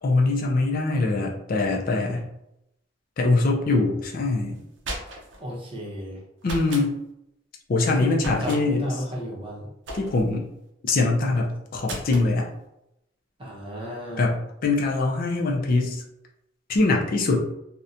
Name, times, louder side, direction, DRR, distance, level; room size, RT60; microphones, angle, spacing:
voice 1, 0.0-2.3 3.2-4.6 6.4-7.0 7.7-9.0 9.9-10.5 10.8-12.5 14.2-16.0 16.7-17.4, left 3 dB, 45° left, 0 dB, 0.4 m, -23 dB
sound 1, 4.6-5.4 6.4-6.9 8.2-8.6 9.9-10.4 11.8-12.3, right 1 dB, 65° right, 0.5 m, -35 dB
voice 2, 5.4-6.2 8.0-9.6 13.4-14.3, equal, 25° right, -4 dB, 0.7 m, -33 dB
2.7 x 2.1 x 2.4 m, 0.83 s
head